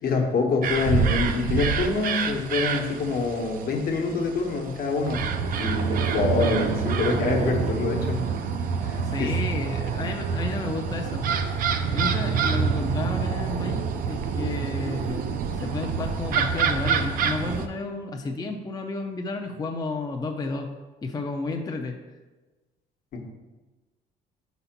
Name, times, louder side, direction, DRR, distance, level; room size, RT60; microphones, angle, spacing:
voice 1, 0.0-5.2 5.5-8.2 8.8-9.3 23.1-23.2, left 4 dB, 60° left, 2 dB, 1.2 m, -26 dB
sound 1, 0.6-17.7, right 6 dB, 55° right, 0.5 m, -27 dB
voice 2, 9.0-11.3 11.9-20.7 21.0-22.0, left 3 dB, 25° left, 3 dB, 0.6 m, -32 dB
4.9 x 4.1 x 5.8 m, 1.2 s
cardioid pair, 110°, 17 cm